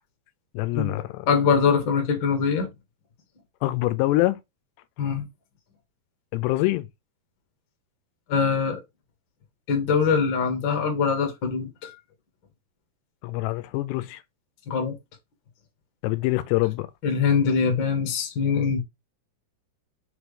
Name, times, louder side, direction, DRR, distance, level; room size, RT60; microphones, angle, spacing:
voice 1, 0.5-1.3 3.6-4.4 6.3-6.9 13.2-14.2 16.0-16.9, left 18 dB, 85° left, 2.7 m, -25 dB
voice 2, 1.3-2.7 5.0-5.3 8.3-8.8 9.7-11.9 14.7-14.9 17.0-18.8, left 6 dB, 55° left, 1.3 m, -23 dB
6.0 x 4.7 x 3.3 m
omnidirectional pair, 4.9 m